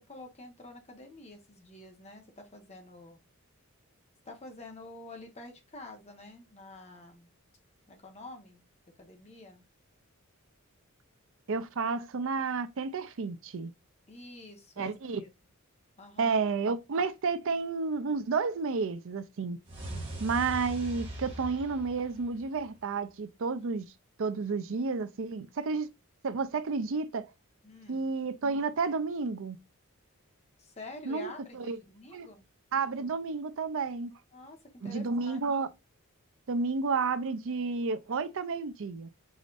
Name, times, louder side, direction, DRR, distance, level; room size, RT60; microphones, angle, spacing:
voice 1, 0.1-3.2 4.2-7.3 7.9-8.6 9.0-9.6 14.1-15.3 16.0-16.4 27.6-28.1 30.6-32.4 34.3-35.4, left 2 dB, 30° left, 1.2 m, -48 dB
voice 2, 11.5-13.7 14.8-15.2 16.2-19.6 20.2-23.9 24.2-25.9 26.2-27.2 27.9-29.6 31.1-31.8 32.1-32.3 32.7-34.1 34.8-35.7 36.5-39.1, right 4 dB, 60° right, 0.5 m, -31 dB
sound 1, 19.6-22.8, right 1 dB, 25° right, 2.0 m, -41 dB
4.9 x 4.1 x 2.5 m
head